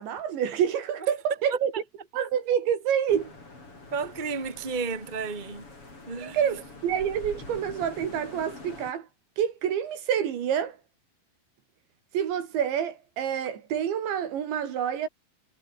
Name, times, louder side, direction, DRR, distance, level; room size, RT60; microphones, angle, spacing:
voice 1, 0.0-1.7 2.1-3.3 6.2-9.1 9.4-10.8 12.1-15.1, right 9 dB, 65° right, 4.7 m, -27 dB
sound 1, 3.1-8.9, left 3 dB, 25° left, 7.9 m, -45 dB
voice 2, 3.9-5.6 6.1-6.5, right 4 dB, 10° right, 2.3 m, -32 dB
omnidirectional pair, 5.8 m